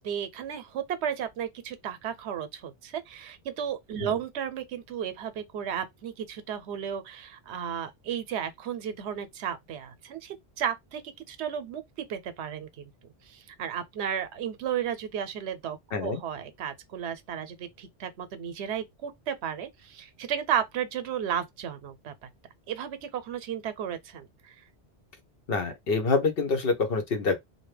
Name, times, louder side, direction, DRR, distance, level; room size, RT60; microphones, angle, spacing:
voice 1, 0.0-11.0 11.3-11.8 12.1-12.9 13.3-22.1 22.7-24.5, right 8 dB, 80° right, 0.9 m, -34 dB
voice 2, 15.9-16.2 25.5-27.4, left 4 dB, 60° left, 0.9 m, -26 dB
2.7 x 2.2 x 3.2 m
omnidirectional pair, 1.1 m